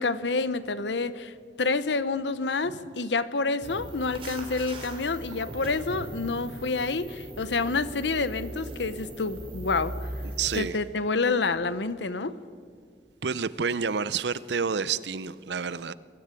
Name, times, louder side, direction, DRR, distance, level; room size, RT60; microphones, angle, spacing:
voice 1, 0.0-10.0 10.5-12.4, left 3 dB, 85° left, 0.9 m, -28 dB
sound 1, 3.6-10.6, right 1 dB, 30° right, 3.0 m, -39 dB
voice 2, 10.4-10.8 13.2-15.9, right 6 dB, 80° right, 0.7 m, -29 dB
23.5 x 13.5 x 9.0 m
head